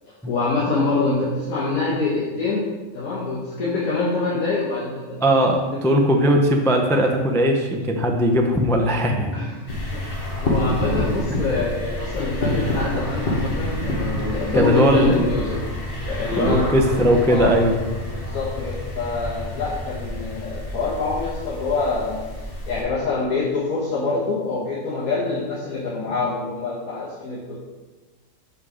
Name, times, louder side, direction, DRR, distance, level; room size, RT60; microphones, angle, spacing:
voice 1, 0.3-2.7 2.9-5.2 5.7-5.8 9.3-9.7 9.9-15.6 16.0-17.0 17.3-17.5 18.1-22.2 22.7-27.6, left 3 dB, 80° left, -7 dB, 1.9 m, -25 dB
voice 2, 5.2-9.4 11.3-11.4 14.5-15.3 16.4-17.7, equal, 5° left, 2 dB, 0.4 m, -19 dB
sound 1, 9.7-22.8, left 1 dB, 40° left, 1.6 m, -28 dB
6.9 x 5.6 x 5.0 m, 1.3 s
omnidirectional pair, 1.5 m